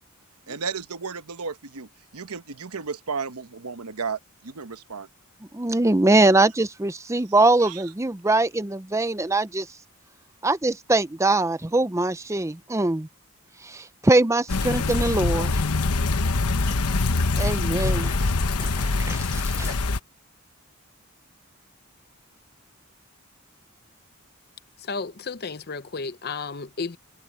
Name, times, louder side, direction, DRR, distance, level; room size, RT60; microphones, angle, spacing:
voice 1, 0.5-5.1 7.6-7.8, right 5 dB, 90° right, 1.1 m, -34 dB
voice 2, 5.5-9.7 10.4-13.1 13.6-15.5 17.4-18.2 18.6-19.7, right 2 dB, 15° right, 0.6 m, -22 dB
sound 1, 14.5-20.0, left 3 dB, 90° left, 1.0 m, -24 dB
voice 3, 24.8-27.0, left 4 dB, 45° left, 0.7 m, -33 dB
head